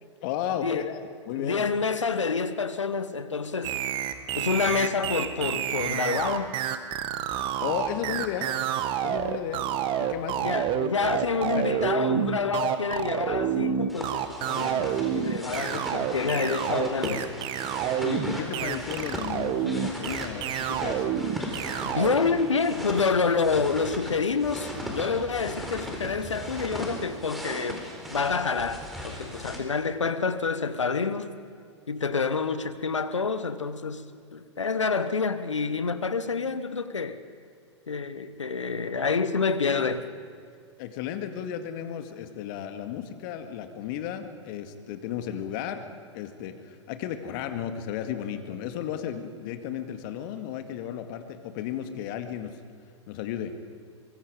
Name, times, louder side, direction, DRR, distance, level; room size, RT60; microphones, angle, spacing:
voice 1, 0.2-1.7 7.6-8.5 9.0-9.6 10.0-10.6 11.0-11.2 11.5-11.6 18.0-21.1 40.8-45.9 46.1-52.6 53.1-53.6, left 9 dB, 45° left, 2.1 m, -34 dB
voice 2, 1.3-3.8 4.4-6.6 10.4-17.3 21.8-31.3 31.9-37.2 37.9-40.1, left 5 dB, 80° left, 1.4 m, -28 dB
sound 1, 3.6-22.1, right 10 dB, 35° right, 1.6 m, -28 dB
sound 2, 13.9-29.6, equal, ahead, 4.3 m, -38 dB
24.5 x 23.0 x 5.2 m
figure-of-eight pair, 100°, 15 cm